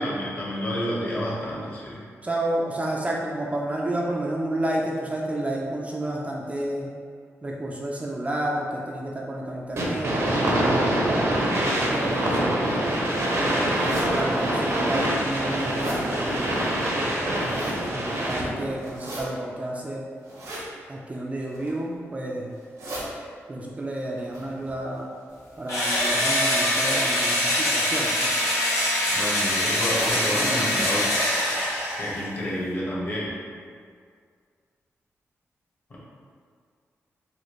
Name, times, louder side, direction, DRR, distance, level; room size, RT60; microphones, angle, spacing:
voice 1, 0.0-2.0 29.1-31.2 32.0-33.4 35.9-36.0, equal, 45° left, -7 dB, 1.2 m, -29 dB
voice 2, 2.2-6.9 7.4-12.6 13.4-16.7 17.9-20.0 20.9-22.5 23.5-25.1 25.6-28.3, right 1 dB, 25° right, -3 dB, 0.4 m, -31 dB
sound 1, 9.8-18.7, right 1 dB, 65° right, 0.7 m, -24 dB
sound 2, 13.8-14.1 14.7-14.8 15.2-16.0 17.1-17.8 18.8-19.2 20.2-20.7 21.4-21.8 22.5-23.0 24.2-25.2 25.8-26.2 26.9-27.1 28.1-28.4 28.7-28.8 29.1-29.2 29.7-30.2 30.6-30.7 31.0-31.1 31.6-31.7 32.0-32.1, right 1 dB, 90° right, 1.1 m, -39 dB
Engine / Drill, 25.7-32.3, left 1 dB, 90° left, 0.9 m, -24 dB
4.0 x 2.4 x 3.1 m, 2.1 s
wide cardioid pair, 100°, 5 cm